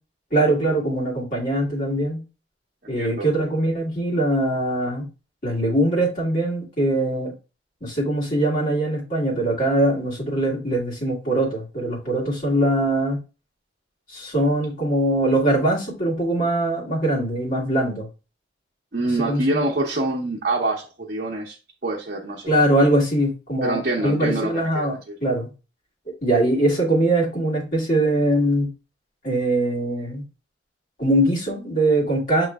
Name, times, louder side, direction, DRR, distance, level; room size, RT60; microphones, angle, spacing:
voice 1, 0.3-2.2 2.9-5.1 5.4-7.3 7.8-13.2 14.1-18.1 19.3-19.6 22.5-25.5 26.2-28.7 29.2-30.3 31.0-32.5, right 1 dB, 45° left, -4 dB, 2.0 m, -22 dB
voice 2, 2.8-3.3 18.9-21.6 21.8-22.5 23.6-25.1, right 2 dB, 50° right, -2 dB, 0.8 m, -26 dB
7.0 x 3.1 x 2.3 m, 0.30 s
head